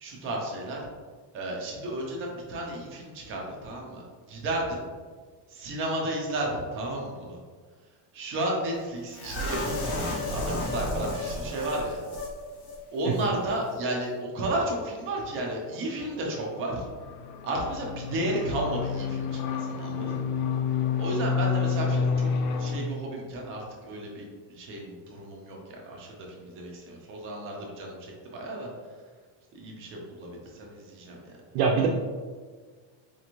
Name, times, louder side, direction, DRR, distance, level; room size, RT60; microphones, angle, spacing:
voice 1, 0.0-0.8 1.3-4.8 5.5-7.4 8.1-12.0 12.9-16.8 17.4-20.3 21.0-22.3 22.6-26.1 26.4-28.0 28.2-28.7 29.5-31.2, right 1 dB, 30° right, -1 dB, 0.4 m, -33 dB
sound 1, 9.1-12.3 12.6-12.8 13.1-13.3, left 1 dB, 30° left, 0.4 m, -32 dB
sound 2, 15.8-22.8, left 6 dB, 85° left, 0.6 m, -29 dB
voice 2, 31.5-31.9, right 6 dB, 80° right, -1 dB, 0.6 m, -24 dB
4.3 x 2.5 x 2.9 m, 1.5 s
cardioid pair, 180°, 49 cm